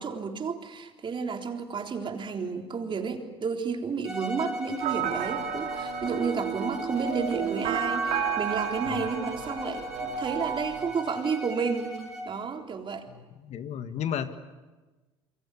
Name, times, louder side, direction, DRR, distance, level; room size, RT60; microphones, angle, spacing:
voice 1, 0.0-12.0 12.3-13.0, right 5 dB, 40° right, 4 dB, 3.8 m, -31 dB
Bowed string instrument, 4.0-12.4, equal, 5° right, 6.4 m, -38 dB
sound 1, 4.8-10.9, right 8 dB, 65° right, 2.8 m, -32 dB
voice 2, 13.1-14.4, left 9 dB, 55° left, 10 dB, 1.7 m, -34 dB
28.5 x 23.5 x 8.4 m, 1.2 s
hypercardioid pair, 70°, 14 cm